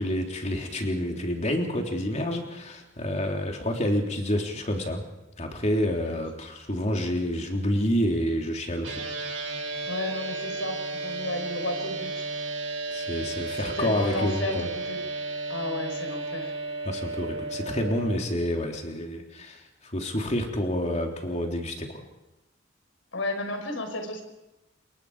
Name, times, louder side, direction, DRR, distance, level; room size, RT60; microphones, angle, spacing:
voice 1, 0.0-5.0 5.4-9.0 12.9-14.7 16.9-22.0, equal, 35° left, 2 dB, 3.5 m, -28 dB
sound 1, 8.8-18.2, right 3 dB, 90° right, 6.8 m, -33 dB
voice 2, 9.8-12.3 13.6-15.0 15.5-16.5 23.1-24.2, left 2 dB, 85° left, 5 dB, 4.9 m, -33 dB
27.5 x 22.5 x 5.0 m, 1.0 s
head